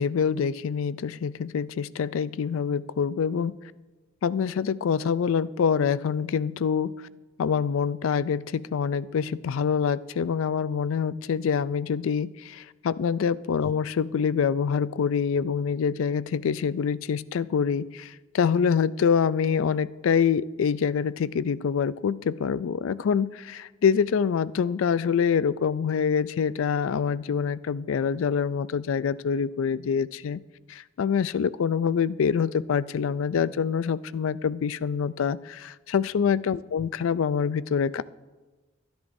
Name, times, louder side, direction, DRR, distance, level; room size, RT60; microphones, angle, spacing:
voice 1, 0.0-3.5 4.2-6.9 7.4-30.4 30.7-38.0, left 6 dB, 80° left, 17 dB, 0.4 m, -25 dB
23.0 x 10.5 x 2.7 m, 1.2 s
head